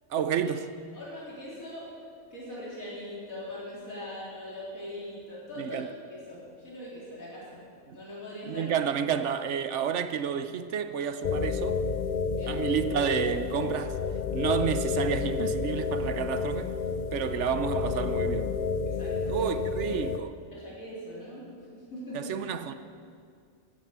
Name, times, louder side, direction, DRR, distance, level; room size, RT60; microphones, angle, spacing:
voice 1, 0.1-0.7 5.6-5.9 7.9-8.0 8.4-11.8 12.5-14.0 14.3-16.7 17.1-18.6 19.3-20.3 22.1-22.7, right 7 dB, 65° right, 1.0 m, -30 dB
voice 2, 0.9-1.9 2.3-7.6 7.9-8.7 12.3-12.6 14.6-14.7 18.8-19.5 19.8-20.0 20.5-21.4 21.7-22.3, left 1 dB, 85° left, 4.3 m, -41 dB
sound 1, 11.2-20.2, left 5 dB, 50° left, 0.6 m, -30 dB
14.0 x 10.5 x 7.3 m
omnidirectional pair, 1.4 m